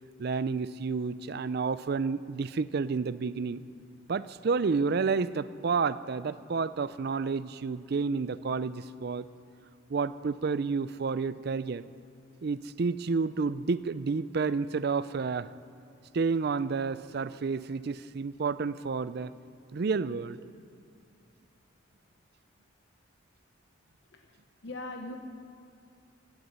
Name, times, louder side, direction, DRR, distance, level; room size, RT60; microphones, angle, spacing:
voice 1, 0.2-3.6 4.1-9.3 9.9-11.9 12.4-15.5 16.1-19.3 19.7-20.4, right 4 dB, 50° right, 15 dB, 0.4 m, -30 dB
voice 2, 24.6-25.2, left 2 dB, 55° left, 4 dB, 1.0 m, -40 dB
13.5 x 10.5 x 8.2 m, 2.6 s
head